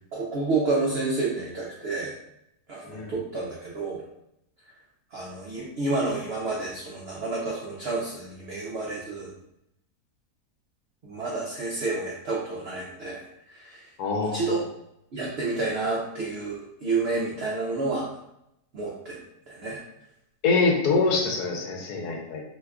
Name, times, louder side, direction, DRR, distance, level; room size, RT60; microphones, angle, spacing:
voice 1, 0.1-2.1 2.7-4.0 5.1-9.3 11.0-13.9 14.2-14.6 15.1-18.1 18.7-19.2 19.5-19.8, right 3 dB, 80° right, -4 dB, 0.5 m, -30 dB
voice 2, 14.0-14.5 20.4-22.4, left 3 dB, 75° left, 1 dB, 1.1 m, -24 dB
2.9 x 2.3 x 3.4 m, 0.79 s
omnidirectional pair, 1.8 m